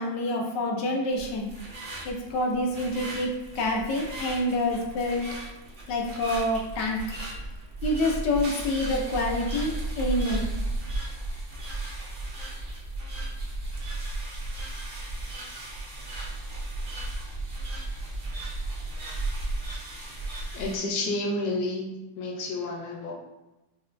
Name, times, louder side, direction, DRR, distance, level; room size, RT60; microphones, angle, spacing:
voice 1, 0.0-1.5 2.0-5.3 5.9-7.0 7.8-10.6, left 1 dB, 90° left, 0 dB, 1.3 m, -27 dB
sound 1, 1.1-20.8, right 2 dB, 50° right, 0.6 m, -35 dB
voice 2, 20.5-21.9 22.2-23.1, left 2 dB, 70° left, 0 dB, 1.2 m, -30 dB
5.4 x 2.2 x 2.5 m, 1.0 s
omnidirectional pair, 1.8 m